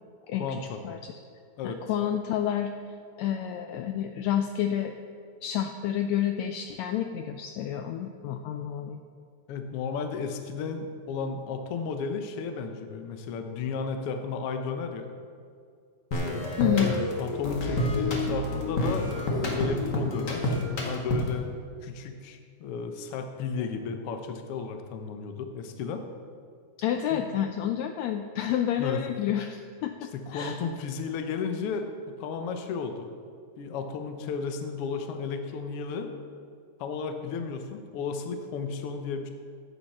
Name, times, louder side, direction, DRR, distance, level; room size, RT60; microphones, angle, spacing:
voice 1, 0.4-0.8 1.6-1.8 9.5-15.1 16.2-16.4 16.8-21.5 21.8-26.0 27.1-27.3 28.8-29.0 30.1-33.1 33.6-36.1 36.8-39.3, left 5 dB, 65° left, 6 dB, 1.6 m, -33 dB
voice 2, 1.6-2.7 3.2-4.9 5.4-9.0 16.6-16.9 26.8-30.5, left 10 dB, 80° left, 6 dB, 1.7 m, -29 dB
sound 1, 16.1-21.4, left 1 dB, 40° left, 2.0 m, -29 dB
15.0 x 8.7 x 4.3 m, 2.2 s
omnidirectional pair, 3.5 m